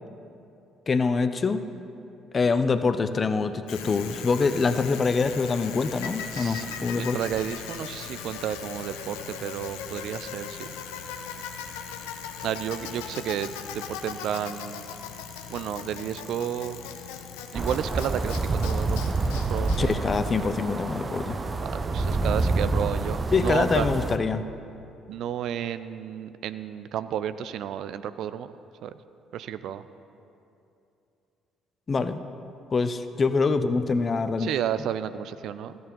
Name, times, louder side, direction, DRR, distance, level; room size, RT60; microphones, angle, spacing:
voice 1, 0.9-1.6 2.3-7.2 19.8-21.4 23.3-24.4 31.9-32.2 32.7-34.5, left 4 dB, 35° left, 11 dB, 0.7 m, -25 dB
Bicycle, 3.7-20.7, left 7 dB, 75° left, 0.7 m, -39 dB
voice 2, 6.3-10.7 12.4-14.8 15.5-16.8 17.5-19.0 19.5-19.9 21.6-23.9 25.1-28.5 28.8-28.9 29.3-29.8 34.4-35.8, right 10 dB, 60° right, 13 dB, 0.4 m, -32 dB
sound 1, 17.5-24.2, right 3 dB, 30° right, 0.7 m, -27 dB
14.0 x 9.4 x 5.4 m, 2.7 s
figure-of-eight pair, 50°, 0 cm